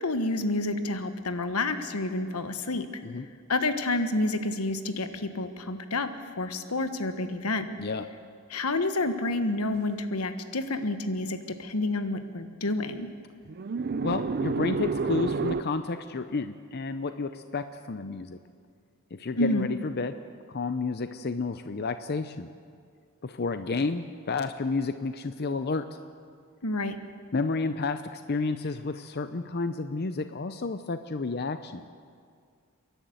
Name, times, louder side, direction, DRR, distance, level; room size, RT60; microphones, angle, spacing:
voice 1, 0.0-2.9 3.5-6.1 6.4-7.7 8.5-13.1 19.4-19.7 26.6-26.9, left 2 dB, 85° left, 9 dB, 1.3 m, -29 dB
sound 1, 9.7-9.8 13.5-15.6, right 4 dB, 45° right, 0.5 m, -29 dB
voice 2, 14.0-18.4 19.1-20.1 20.5-22.5 23.2-25.8 27.3-31.8, left 3 dB, 45° left, 10 dB, 0.6 m, -31 dB
29.0 x 11.5 x 7.9 m, 2.1 s
head